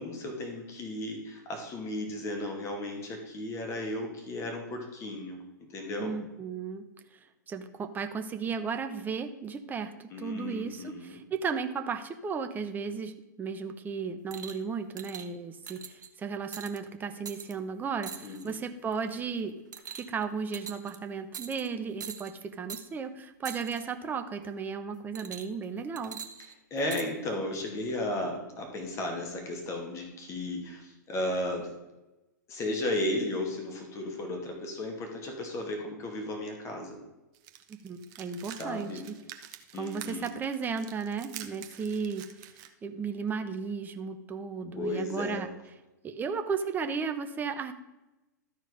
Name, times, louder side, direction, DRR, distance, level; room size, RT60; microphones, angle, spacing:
voice 1, 0.0-5.4 5.7-6.1 10.1-11.2 18.2-18.6 26.7-31.7 32.5-37.0 38.6-39.0 39.7-40.3 44.8-45.4, left 1 dB, 30° left, 3 dB, 2.6 m, -34 dB
voice 2, 6.0-6.9 7.1-7.2 7.5-19.6 20.0-26.2 37.8-39.2 39.8-42.5 42.8-45.5 46.0-47.7, right 5 dB, 20° right, 8 dB, 0.9 m, -35 dB
sound 1, 14.3-14.6 15.0-15.3 15.7-16.1 16.5-16.8 17.3-17.5 18.0-18.5 18.9-19.2 19.7-20.2 20.5-21.0 21.3-21.7 22.0-22.3 22.7-22.8 23.4-23.8 25.1-25.6 26.0-27.1 27.9-28.0, right 7 dB, 75° right, 1.0 m, -42 dB
sound 2, 37.3-42.7, right 11 dB, 40° right, 1.0 m, -47 dB
13.0 x 4.7 x 5.3 m, 1.0 s
hypercardioid pair, 105°, 10 cm